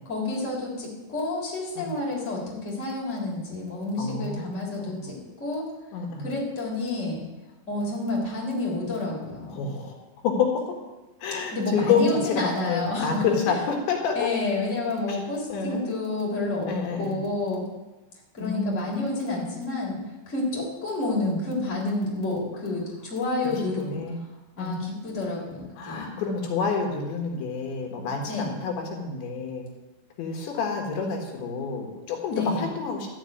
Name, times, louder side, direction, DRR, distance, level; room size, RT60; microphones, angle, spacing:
voice 1, 0.0-5.7 6.2-7.2 7.7-9.7 11.5-13.3 14.1-16.7 17.0-17.7 18.3-20.0 20.2-24.0 24.6-26.1 28.3-28.5 32.3-32.7, left 2 dB, 15° left, -4 dB, 3.5 m, -29 dB
voice 2, 4.0-4.5 4.8-5.1 5.9-6.3 9.5-9.9 10.2-10.6 11.2-14.3 15.1-15.2 15.5-15.8 16.7-17.2 18.4-18.9 23.6-24.2 24.6-24.8 25.8-29.6 30.2-33.1, left 5 dB, 80° left, 1 dB, 4.0 m, -28 dB
12.5 x 6.6 x 9.2 m, 1.1 s
omnidirectional pair, 5.1 m